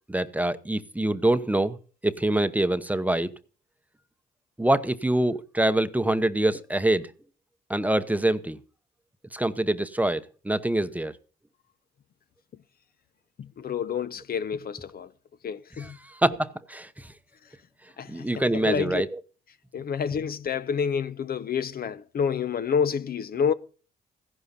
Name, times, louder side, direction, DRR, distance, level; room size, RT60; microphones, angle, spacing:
voice 1, 0.1-1.8 2.0-3.3 4.6-7.1 7.7-8.6 9.3-11.1 15.8-15.9 16.2-16.9 18.1-19.1, right 1 dB, 10° right, 0.8 m, -25 dB
voice 2, 13.4-15.1 15.4-16.0 18.0-19.0 19.7-23.5, left 7 dB, 50° left, 0.8 m, -28 dB
15.0 x 11.0 x 4.1 m
cardioid pair, 90°, 20 cm